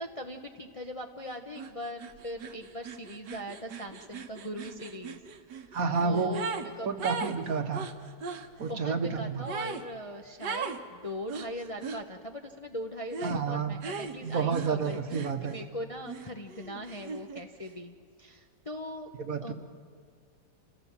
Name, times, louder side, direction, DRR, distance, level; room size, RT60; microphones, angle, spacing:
voice 1, 0.0-5.2 5.6-6.9 8.6-19.1 19.4-19.5, equal, 25° left, 3 dB, 0.8 m, -40 dB
sound 1, 1.6-1.7 2.0-6.7 7.0-8.5 9.5-9.9 10.4-10.8 11.3-12.0 13.1-13.4 13.8-15.7 16.1-17.4, right 5 dB, 75° right, 1.7 m, -38 dB
voice 2, 5.7-6.4 6.8-7.9 8.6-9.4 13.2-13.7 14.2-15.6 19.2-19.5, right 5 dB, 60° right, 7 dB, 1.5 m, -30 dB
27.5 x 16.5 x 7.5 m, 2.2 s
omnidirectional pair, 1.9 m